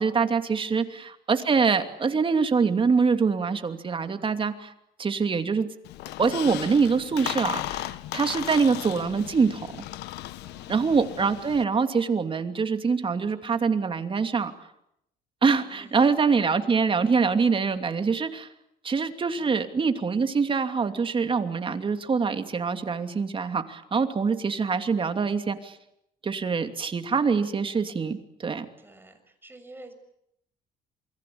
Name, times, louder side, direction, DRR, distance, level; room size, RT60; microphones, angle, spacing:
voice 1, 0.0-4.7 5.0-5.7 6.2-9.8 10.7-14.5 15.4-18.5 18.8-25.8 26.2-28.7, right 5 dB, 30° right, 8 dB, 2.7 m, -24 dB
Squeak, 5.8-11.6, left 16 dB, 90° left, 1.1 m, -36 dB
voice 2, 10.4-10.9 15.5-16.1 19.3-19.5 28.8-29.9, right 2 dB, 10° right, 7 dB, 6.7 m, -50 dB
28.0 x 23.0 x 8.7 m, 0.78 s
cardioid pair, 110°, 17 cm